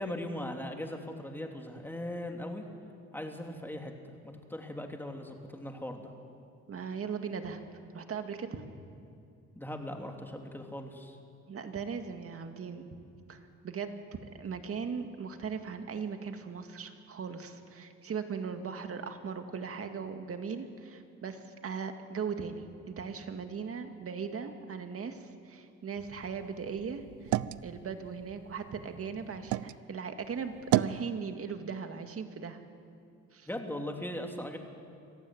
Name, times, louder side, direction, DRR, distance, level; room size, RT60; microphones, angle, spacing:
voice 1, 0.0-2.6 3.1-6.1 9.5-11.2 33.5-34.6, left 1 dB, 5° left, 3 dB, 2.9 m, -39 dB
voice 2, 6.7-7.6 7.9-8.7 11.5-12.9 13.3-14.0 14.4-32.6 33.3-33.5, right 6 dB, 50° right, 6 dB, 2.1 m, -39 dB
sound 1, 26.0-29.8 30.2-31.1, right 14 dB, 80° right, 0.6 m, -34 dB
25.0 x 15.0 x 9.2 m, 2.4 s
cardioid pair, 90°, 30 cm